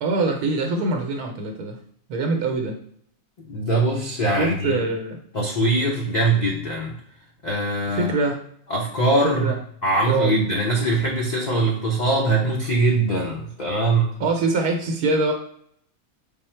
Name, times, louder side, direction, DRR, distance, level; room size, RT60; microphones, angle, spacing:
voice 1, 0.0-1.8 2.1-2.8 4.3-5.2 7.9-8.4 9.2-9.6 10.1-10.4 14.2-15.3, right 3 dB, 80° right, 2 dB, 1.2 m, -23 dB
voice 2, 3.4-4.8 5.3-7.0 7.4-8.1 8.7-9.5 9.8-14.1, right 2 dB, 50° left, -2 dB, 0.5 m, -22 dB
5.4 x 2.0 x 4.3 m, 0.65 s
omnidirectional pair, 1.6 m